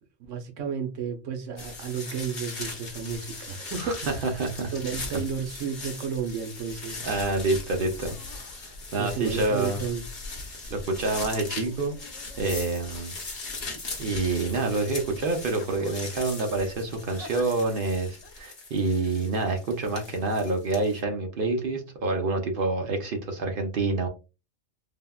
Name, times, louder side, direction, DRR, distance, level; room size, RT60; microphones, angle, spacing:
voice 1, 0.2-4.0 4.7-7.0 9.0-10.0, right 6 dB, 80° right, 1.0 m, -32 dB
sound 1, 1.6-21.0, left 3 dB, 50° left, 1.0 m, -40 dB
voice 2, 4.2-4.7 7.0-8.2 8.6-9.8 10.7-12.0 12.4-13.1 14.0-24.1, right 3 dB, 55° right, 0.7 m, -27 dB
sound 2, 7.9-8.6 9.4-9.9 10.9-13.0 13.7-14.5 14.9-15.1 15.5-16.1 17.1-17.5 18.2-18.3, left 3 dB, 85° left, 1.0 m, -49 dB
sound 3, 10.6-13.5 13.8-17.0 17.2-17.3 17.7-17.8 17.9-18.4, left 1 dB, 20° left, 0.6 m, -44 dB
3.4 x 2.1 x 2.2 m
omnidirectional pair, 1.3 m